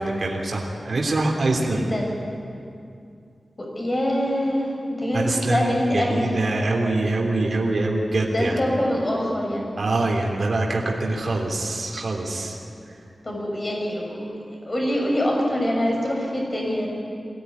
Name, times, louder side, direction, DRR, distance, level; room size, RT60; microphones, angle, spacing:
voice 1, 0.0-1.9 5.1-8.6 9.8-12.6 12.8-13.0, right 2 dB, 55° right, -1 dB, 3.2 m, -24 dB
voice 2, 1.6-2.1 3.6-6.4 8.3-9.7 13.2-16.9, equal, 30° left, -1 dB, 6.6 m, -25 dB
23.0 x 17.5 x 9.8 m, 2.5 s
wide cardioid pair, 125°, 0 cm